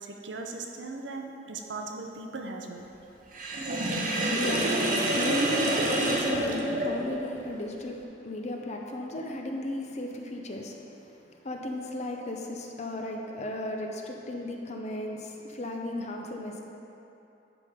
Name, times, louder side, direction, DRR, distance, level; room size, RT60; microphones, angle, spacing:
voice 1, 0.0-2.9, right 3 dB, 80° right, 2 dB, 0.7 m, -38 dB
Sink (filling or washing), 3.3-7.3, right 1 dB, 45° right, 0.8 m, -27 dB
voice 2, 3.5-16.6, left 1 dB, 40° left, 1 dB, 0.6 m, -35 dB
10.5 x 3.6 x 5.0 m, 2.9 s
head